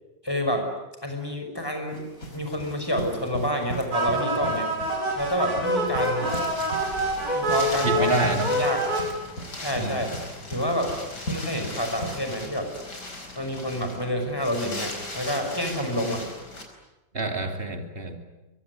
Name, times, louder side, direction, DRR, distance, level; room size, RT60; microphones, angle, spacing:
voice 1, 0.2-0.7 1.0-2.0 2.3-4.7 5.2-6.3 7.2-8.8 9.6-10.1 10.5-10.9 11.3-12.7 13.4-16.2, equal, 15° left, 4 dB, 6.0 m, -28 dB
sound 1, 1.9-12.4, equal, 50° left, 5.7 m, -39 dB
sound 2, 3.9-9.0, right 1 dB, 60° right, 7.3 m, -26 dB
Wind, 5.4-16.6, left 2 dB, 70° left, 5.3 m, -39 dB
voice 2, 7.8-8.5 9.7-10.1 17.1-18.2, right 2 dB, 30° right, 5 dB, 3.2 m, -27 dB
24.0 x 23.0 x 9.8 m, 1.0 s
omnidirectional pair, 1.8 m